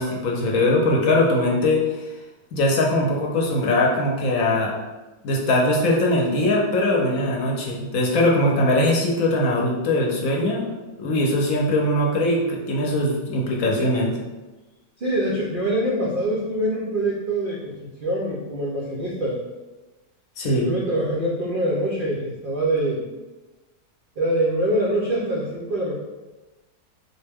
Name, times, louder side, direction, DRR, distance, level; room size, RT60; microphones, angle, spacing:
voice 1, 0.0-2.1 2.5-4.7 5.2-10.7 11.0-14.2 20.4-20.7, left 1 dB, 65° left, -1 dB, 1.0 m, -21 dB
voice 2, 15.0-17.8 18.0-19.4 20.4-23.0 24.2-25.9, right 1 dB, 80° right, -4 dB, 0.4 m, -24 dB
4.2 x 2.1 x 3.4 m, 1.1 s
omnidirectional pair, 1.7 m